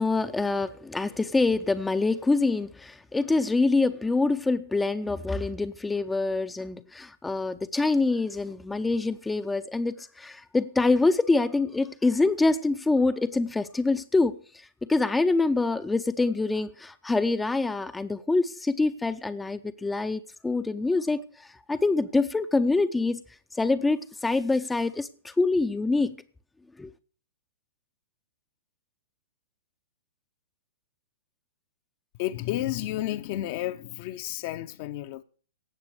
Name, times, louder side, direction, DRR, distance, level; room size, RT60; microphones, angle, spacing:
voice 1, 0.0-14.4 14.9-23.2 23.5-26.2 26.8-26.9, left 3 dB, 5° left, 0.7 m, -25 dB
voice 2, 32.2-35.2, left 14 dB, 40° left, 0.8 m, -31 dB
17.5 x 7.6 x 6.5 m
figure-of-eight pair, 110°, 0 cm